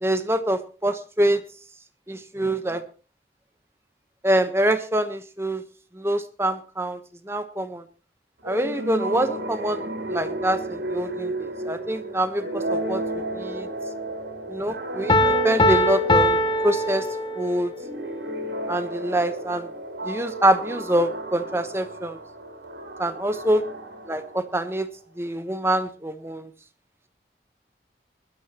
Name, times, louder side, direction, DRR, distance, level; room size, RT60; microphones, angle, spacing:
voice 1, 0.0-1.4 2.1-2.8 4.2-5.6 5.9-7.8 8.4-13.7 14.5-16.4 16.6-17.1 17.3-17.7 18.7-19.7 20.0-22.2 23.0-23.6 24.1-24.9 25.2-26.5, right 1 dB, 15° right, 9 dB, 1.1 m, -25 dB
sound 1, 8.4-24.8, right 1 dB, 75° right, 3.4 m, -32 dB
Piano, 15.1-17.7, left 1 dB, 25° left, 0.9 m, -21 dB
21.5 x 12.5 x 3.0 m, 0.36 s
head